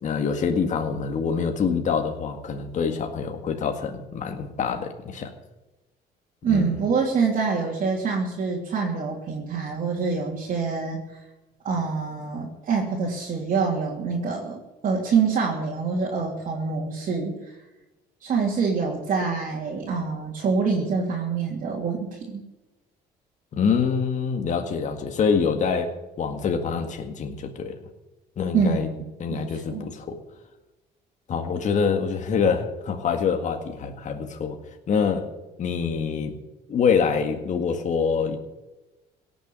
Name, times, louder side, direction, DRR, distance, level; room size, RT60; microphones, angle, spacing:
voice 1, 0.0-5.3 6.5-6.6 23.5-27.7 28.4-28.9 29.2-30.2 31.3-34.6 34.9-35.3 35.6-36.4 36.7-38.4, left 6 dB, 45° left, 5 dB, 1.9 m, -25 dB
voice 2, 6.4-11.2 11.6-17.6 18.2-22.4 28.5-29.9, right 5 dB, 50° right, -2 dB, 3.0 m, -26 dB
17.0 x 7.1 x 9.4 m, 1.0 s
cardioid pair, 110°, 17 cm